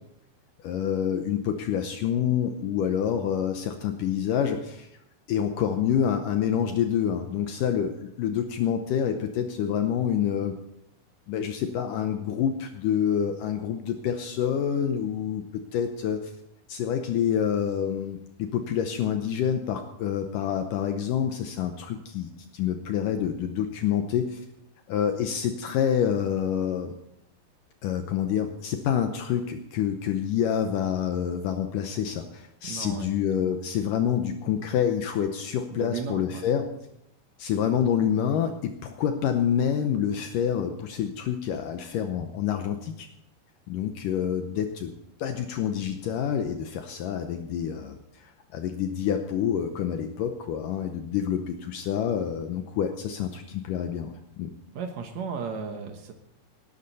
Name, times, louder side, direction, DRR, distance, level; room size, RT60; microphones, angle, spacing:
voice 1, 0.6-4.9 5.3-10.6 11.3-15.4 15.7-16.3 16.7-24.5 24.9-26.9 27.8-36.7 37.4-43.1 43.7-44.9 45.2-54.5, left 8 dB, 85° left, 6 dB, 1.8 m, -27 dB
voice 2, 32.6-33.1 33.4-33.6 35.7-36.5 54.7-56.1, right 6 dB, 85° right, 5 dB, 1.5 m, -35 dB
18.5 x 12.0 x 4.1 m, 0.78 s
omnidirectional pair, 4.9 m